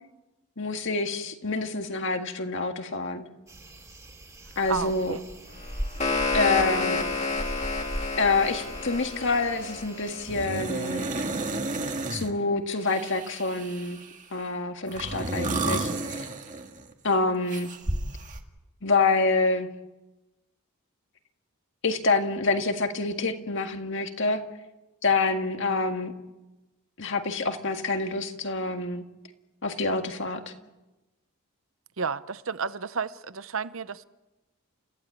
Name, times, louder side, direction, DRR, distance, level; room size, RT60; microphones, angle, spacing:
voice 1, 0.6-3.3 4.6-5.2 6.3-7.0 8.2-11.1 12.1-14.0 14.3-16.2 17.0-17.7 18.8-19.7 21.8-24.4 25.0-26.1 27.0-29.0 29.6-30.5, left 3 dB, 55° left, 1.9 m, -27 dB
sound 1, 3.5-10.5, equal, 15° right, 2.7 m, -39 dB
voice 2, 4.7-5.2 32.0-34.0, right 5 dB, 60° right, 0.8 m, -31 dB
sound 2, 5.6-10.6, left 3 dB, 30° left, 2.2 m, -30 dB
sound 3, 8.5-8.6 8.9-9.4 10.3-12.3 12.8-14.2 14.9-16.9 17.5-18.4, right 2 dB, 35° right, 1.9 m, -32 dB
30.0 x 15.0 x 8.5 m
head